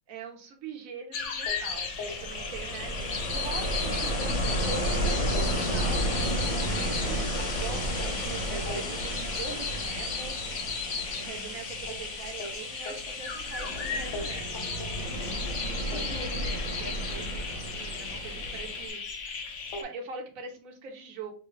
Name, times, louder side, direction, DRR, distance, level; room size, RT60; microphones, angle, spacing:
voice 1, 0.1-1.9 2.2-7.2 7.6-10.7 11.1-19.3 19.8-21.3, right 5 dB, 55° right, 3 dB, 1.2 m, -42 dB
sound 1, 1.1-19.8, left 5 dB, 55° left, 0.8 m, -36 dB
Ocean, 1.5-18.9, equal, 35° left, 0.5 m, -32 dB
6.5 x 2.3 x 3.2 m, 0.40 s
omnidirectional pair, 2.1 m